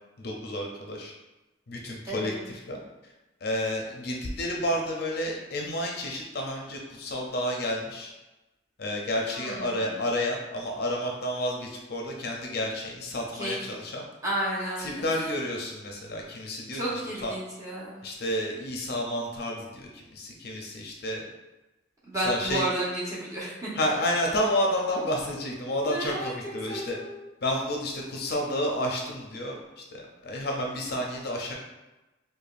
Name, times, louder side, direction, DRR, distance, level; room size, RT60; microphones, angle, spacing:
voice 1, 0.2-1.1 1.7-3.1 3.4-8.1 8.8-14.1 14.8-17.3 18.0-21.3 22.2-22.7 23.7-27.0 27.4-31.5, left 1 dB, 50° left, 0 dB, 0.5 m, -30 dB
voice 2, 2.0-2.4 9.3-9.9 13.3-13.6 14.2-15.1 16.7-18.0 22.1-23.7 25.9-27.2, right 1 dB, 15° right, -8 dB, 0.9 m, -32 dB
5.0 x 2.2 x 2.5 m, 1.1 s
head